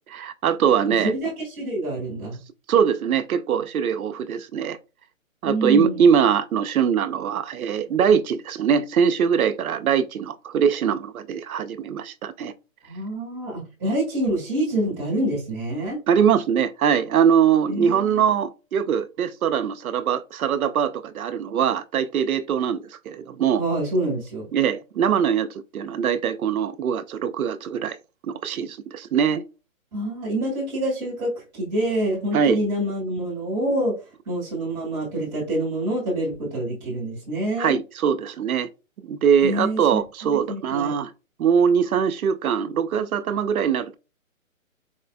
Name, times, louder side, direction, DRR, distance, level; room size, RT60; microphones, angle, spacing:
voice 1, 0.1-1.1 2.7-4.8 5.4-12.5 16.1-23.6 24.5-25.5 25.7-28.0 28.2-29.4 32.3-32.6 37.6-38.7 39.0-41.1 41.4-44.0, right 7 dB, 90° right, 0.5 m, -22 dB
voice 2, 0.9-2.4 5.4-6.0 12.8-16.0 17.7-18.3 23.6-24.5 29.9-33.9 34.3-37.8 39.4-40.9, right 1 dB, 5° right, 0.4 m, -26 dB
4.2 x 2.2 x 2.4 m
hypercardioid pair, 145°, 41 cm